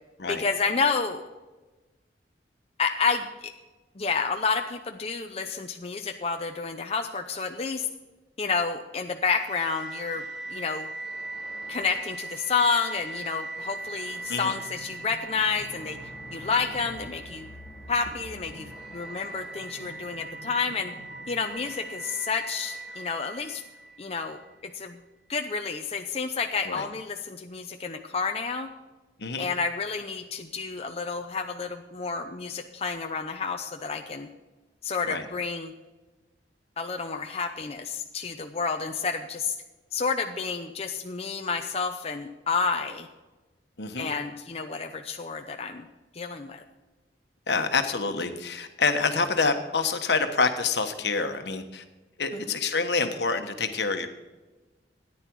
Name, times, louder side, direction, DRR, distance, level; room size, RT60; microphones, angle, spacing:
voice 1, 0.3-1.2 2.8-3.5 4.0-7.9 8.4-10.2 10.5-10.9 11.7-16.0 16.3-17.5 17.9-20.9 21.3-23.6 24.0-25.0 25.3-28.7 29.4-34.3 34.8-35.7 36.8-39.5 39.9-43.1 44.0-45.9 46.1-46.6 52.3-52.5, left 5 dB, 35° left, 4 dB, 0.7 m, -30 dB
sound 1, 9.3-24.5, right 2 dB, 5° right, 3.3 m, -40 dB
voice 2, 43.8-44.1 47.5-51.8 52.2-54.1, left 4 dB, 75° left, 7 dB, 1.3 m, -27 dB
14.0 x 10.0 x 4.7 m, 1.2 s
head